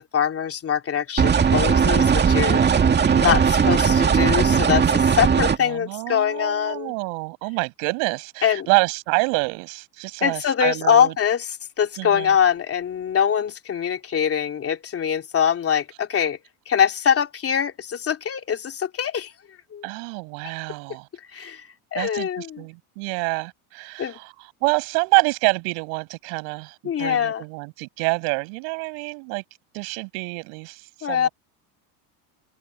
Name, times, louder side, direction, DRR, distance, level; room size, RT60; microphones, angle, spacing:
voice 1, 0.0-2.6 3.2-6.9 8.4-8.7 10.2-16.4 16.7-19.3 19.7-19.9 21.3-22.6 24.0-24.2 26.8-27.4 31.0-31.3, left 8 dB, 30° left, 3.2 m, -23 dB
sound 1, 1.2-5.6, right 6 dB, 25° right, 2.4 m, -18 dB
voice 2, 2.4-3.9 5.6-11.1 12.0-12.3 19.8-21.1 21.9-29.4 29.7-31.3, right 39 dB, 75° right, 7.7 m, -27 dB
open air
supercardioid pair, 120°, 42 cm